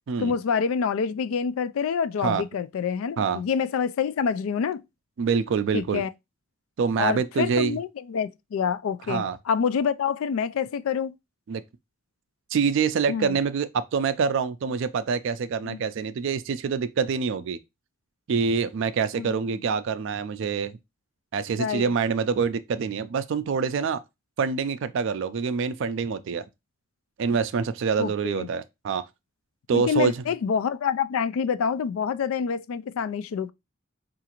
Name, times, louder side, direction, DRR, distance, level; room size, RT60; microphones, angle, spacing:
voice 1, 0.2-4.8 5.7-6.1 7.0-11.1 13.1-13.4 15.6-15.8 19.2-19.4 21.6-21.9 28.0-28.5 29.7-33.5, left 6 dB, 80° left, 0.3 m, -27 dB
voice 2, 5.2-6.0 6.8-7.8 9.1-9.4 11.5-11.6 12.5-17.6 18.3-20.7 21.3-24.0 24.4-26.5 27.2-29.0 29.7-30.2, right 5 dB, 65° right, 0.4 m, -26 dB
4.7 x 2.5 x 2.9 m
head